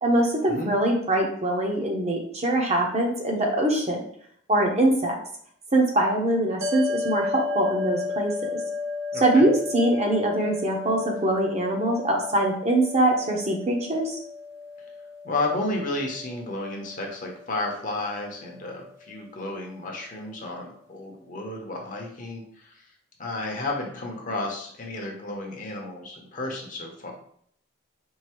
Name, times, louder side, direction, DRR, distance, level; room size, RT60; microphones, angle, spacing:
voice 1, 0.0-4.0 4.5-5.1 5.7-8.6 9.2-14.2, right 1 dB, 30° right, 0 dB, 0.7 m, -23 dB
sound 1, 6.6-19.1, left 4 dB, 70° right, 0.7 m, -34 dB
voice 2, 9.1-9.5 15.2-22.7 23.2-27.1, left 2 dB, 40° left, 0 dB, 0.8 m, -32 dB
4.6 x 2.5 x 3.0 m, 0.63 s
head